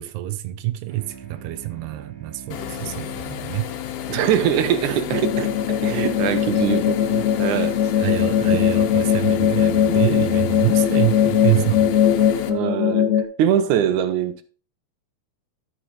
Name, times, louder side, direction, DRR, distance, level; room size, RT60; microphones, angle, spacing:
voice 1, 0.0-3.7 8.0-12.0, right 15 dB, 90° right, 1.6 m, -26 dB
sound 1, 0.9-5.7, right 6 dB, 45° right, 3.7 m, -44 dB
sound 2, 2.5-12.5, left 11 dB, 75° left, 2.2 m, -32 dB
voice 2, 4.1-7.8 12.5-14.4, right 9 dB, 70° right, 2.0 m, -23 dB
sound 3, 5.1-13.2, left 9 dB, 60° left, 3.1 m, -20 dB
13.0 x 6.0 x 3.2 m
omnidirectional pair, 4.2 m